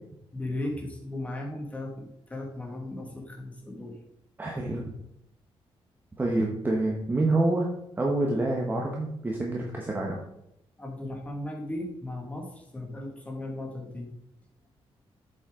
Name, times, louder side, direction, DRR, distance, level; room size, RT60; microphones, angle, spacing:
voice 1, 0.3-4.0 10.8-14.2, left 1 dB, 15° left, 0 dB, 2.1 m, -36 dB
voice 2, 4.4-4.8 6.2-7.7 8.0-10.2, right 2 dB, 20° right, -1 dB, 1.3 m, -27 dB
8.5 x 7.2 x 3.9 m, 0.81 s
wide cardioid pair, 145°, 10 cm